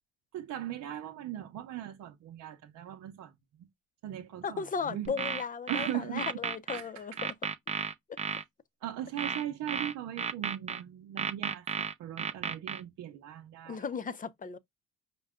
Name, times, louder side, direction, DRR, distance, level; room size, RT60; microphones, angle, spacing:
voice 1, 0.3-3.3 4.0-5.2 5.7-6.3 6.7-7.2 8.8-13.8, right 12 dB, 80° right, 0.8 m, -39 dB
voice 2, 4.4-7.3 8.1-8.2 13.7-14.6, left 6 dB, 25° left, 0.5 m, -36 dB
sound 1, 5.0-6.8 7.2-8.4 9.2-10.8 11.2-12.8, right 5 dB, 20° right, 0.5 m, -33 dB
5.3 x 2.2 x 3.6 m
cardioid pair, 90°, 30 cm